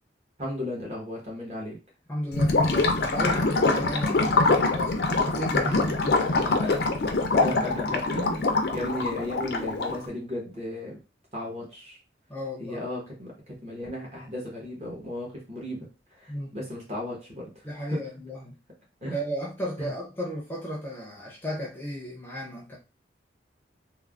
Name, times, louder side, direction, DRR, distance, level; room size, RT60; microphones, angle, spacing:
voice 1, 0.4-1.8 5.6-6.3 6.6-6.8 7.3-8.4 8.7-11.0 11.3-12.0 12.6-18.0 19.0-19.2 19.8-19.9, left 1 dB, 35° right, -2 dB, 1.0 m, -35 dB
voice 2, 2.1-5.8 6.2-6.6 12.3-12.8 16.3-16.5 17.6-18.6 19.1-22.8, equal, 10° left, -3 dB, 0.5 m, -34 dB
Gurgling / Liquid, 2.3-10.1, left 3 dB, 60° left, 0.4 m, -24 dB
3.2 x 2.1 x 2.4 m, 0.31 s
head